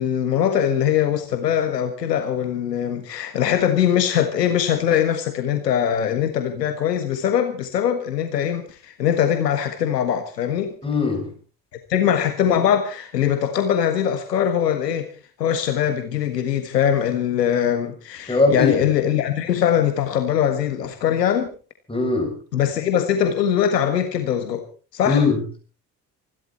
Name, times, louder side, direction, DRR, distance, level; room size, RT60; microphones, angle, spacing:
voice 1, 0.0-10.8 11.9-15.1 15.4-21.5 22.5-24.6 24.9-25.2, left 9 dB, 75° left, 8 dB, 1.7 m, -21 dB
voice 2, 10.8-11.3 18.3-18.7 21.9-22.3 25.1-25.6, left 4 dB, 10° left, 3 dB, 7.8 m, -20 dB
25.5 x 12.5 x 4.3 m, 0.37 s
figure-of-eight pair, 55°, 49 cm